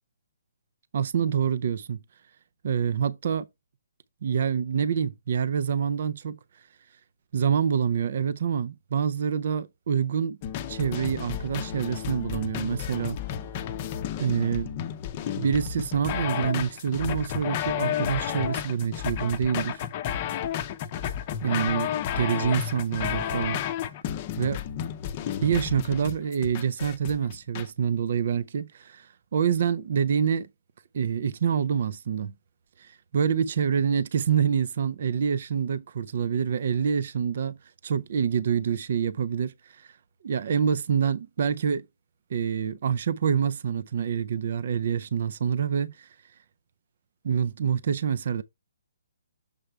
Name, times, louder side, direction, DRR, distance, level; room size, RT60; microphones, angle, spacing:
voice 1, 0.9-2.0 2.6-3.5 4.2-6.4 7.3-10.4 10.7-13.2 14.2-14.7 15.4-19.8 21.4-23.6 24.4-24.6 25.4-30.5 30.9-32.3 32.8-37.6 37.8-39.9 40.2-41.9 42.3-46.1 47.2-48.4, right 7 dB, 55° right, 0.4 m, -26 dB
sound 1, 10.4-27.7, left 9 dB, 35° left, 0.6 m, -32 dB
6.8 x 3.3 x 4.5 m
hypercardioid pair, 145°, 0 cm